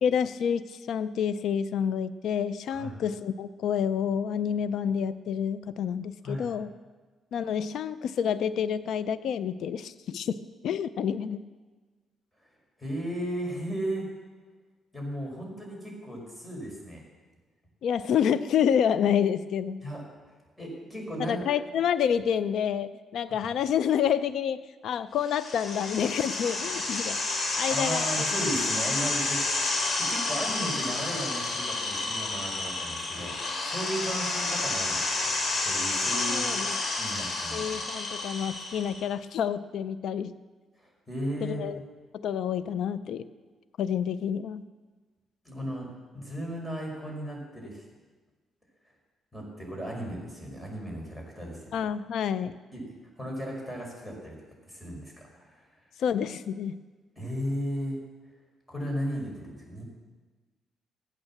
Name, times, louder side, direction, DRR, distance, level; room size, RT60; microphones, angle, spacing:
voice 1, 0.0-6.7 7.3-10.4 10.6-11.4 17.8-19.8 21.2-27.2 27.6-28.2 36.3-36.8 37.5-40.3 41.4-41.8 42.1-43.3 43.8-44.6 51.7-52.5 56.0-56.8, left 8 dB, 75° left, 14 dB, 0.5 m, -28 dB
voice 2, 12.8-14.1 14.9-17.0 19.8-20.0 20.6-21.4 27.7-35.3 35.6-36.5 37.0-37.8 40.8-41.6 45.4-45.9 46.1-47.8 49.3-51.8 52.7-54.4 54.7-55.7 57.2-58.0 58.7-59.8, equal, 10° left, -1 dB, 5.3 m, -35 dB
sound 1, 25.2-39.0, left 3 dB, 50° left, 2.9 m, -30 dB
15.5 x 9.1 x 7.4 m, 1.3 s
cardioid pair, 90°, 0 cm